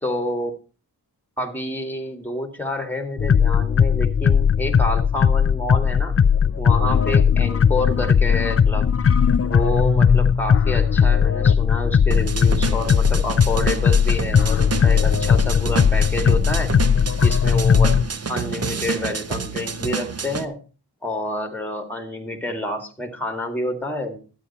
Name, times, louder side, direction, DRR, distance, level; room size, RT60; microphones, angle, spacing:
voice 1, 0.0-0.5 1.4-6.2 6.6-8.9 9.4-16.7 17.2-18.0 18.3-20.6 21.0-24.2, left 1 dB, 5° left, 5 dB, 2.1 m, -28 dB
sound 1, 3.2-18.0, left 7 dB, 40° left, 0.4 m, -18 dB
sound 2, 12.1-20.5, right 5 dB, 40° right, 0.7 m, -29 dB
12.5 x 9.0 x 4.2 m, 0.34 s
wide cardioid pair, 80°, 39 cm